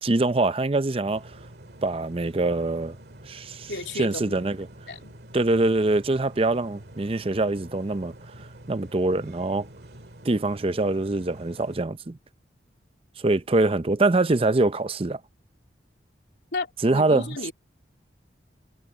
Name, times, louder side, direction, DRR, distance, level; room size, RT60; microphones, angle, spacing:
voice 1, 0.0-1.2 1.8-3.0 3.3-4.6 5.3-8.1 8.7-9.7 10.2-12.2 13.2-15.2 16.8-17.3, right 2 dB, 30° right, 0.6 m, -24 dB
sound 1, 1.0-11.8, right 1 dB, 60° right, 2.1 m, -47 dB
voice 2, 3.7-4.5 4.9-5.1 16.5-17.5, left 3 dB, 70° left, 3.0 m, -33 dB
head